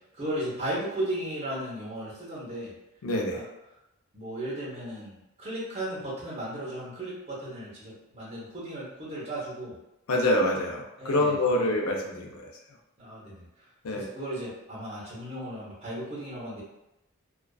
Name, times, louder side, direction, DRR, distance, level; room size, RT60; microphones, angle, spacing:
voice 1, 0.2-2.7 3.3-3.4 4.1-9.8 11.0-11.7 13.0-13.4 13.9-16.6, right 1 dB, 30° right, -7 dB, 0.8 m, -35 dB
voice 2, 3.0-3.4 10.1-12.5 13.8-14.1, left 1 dB, 80° left, 0 dB, 0.5 m, -26 dB
2.4 x 2.3 x 2.3 m, 0.93 s
head